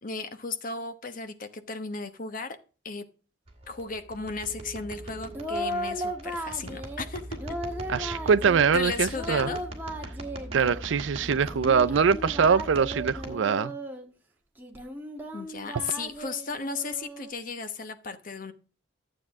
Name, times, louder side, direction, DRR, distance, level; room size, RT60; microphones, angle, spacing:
voice 1, 0.0-2.6 2.8-3.0 3.7-7.4 8.0-8.2 8.7-9.6 15.3-18.5, left 4 dB, 45° left, 1.0 m, -35 dB
sound 1, 3.5-13.3, right 1 dB, 30° right, 2.5 m, -40 dB
Singing, 5.2-7.1 7.4-8.7 9.1-10.8 11.2-14.1 14.6-17.3, equal, 10° right, 1.5 m, -36 dB
voice 2, 7.9-9.5 10.5-13.8, right 6 dB, 70° right, 0.4 m, -23 dB
12.0 x 7.7 x 3.6 m
head